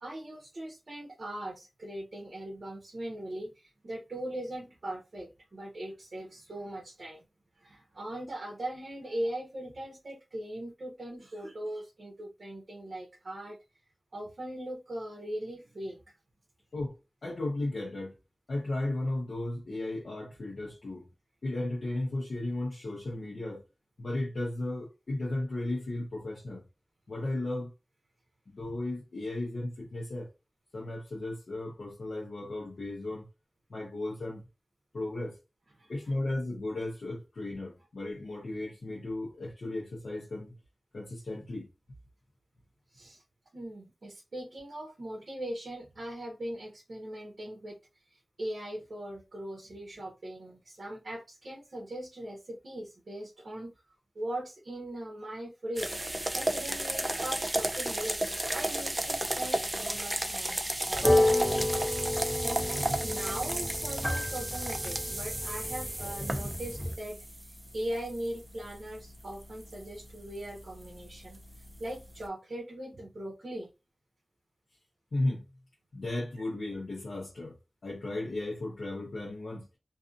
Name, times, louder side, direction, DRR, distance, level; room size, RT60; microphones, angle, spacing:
voice 1, 0.0-7.3 7.6-13.6 14.1-16.2 35.7-36.2 42.9-43.2 43.5-53.7 54.1-62.6 63.0-71.4 71.8-73.7, right 1 dB, 65° right, 0.6 m, -40 dB
voice 2, 17.2-18.1 18.5-21.1 21.4-23.6 24.0-26.6 27.1-27.7 28.5-30.3 30.7-33.3 33.7-34.4 34.9-35.4 35.9-40.5 40.9-41.7 75.1-75.4 75.9-77.6 77.8-79.7, left 2 dB, 85° left, 0.8 m, -35 dB
sound 1, 55.8-72.2, right 1 dB, 20° right, 0.4 m, -34 dB
sound 2, 60.9-66.9, left 1 dB, 15° left, 0.9 m, -30 dB
2.6 x 2.5 x 2.5 m
wide cardioid pair, 85°, 0 cm